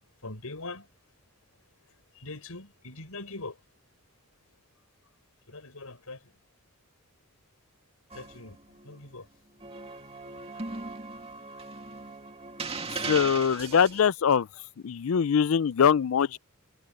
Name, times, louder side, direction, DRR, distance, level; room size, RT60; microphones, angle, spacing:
voice 1, 0.2-0.9 2.1-3.6 5.5-6.2 8.1-8.6 8.8-9.3 10.5-10.9, left 2 dB, 85° left, 5.4 m, -42 dB
sound 1, 8.1-9.0 9.6-14.0, right 4 dB, 25° right, 2.4 m, -38 dB
voice 2, 13.1-14.5 14.8-16.4, left 7 dB, 65° left, 0.4 m, -23 dB
head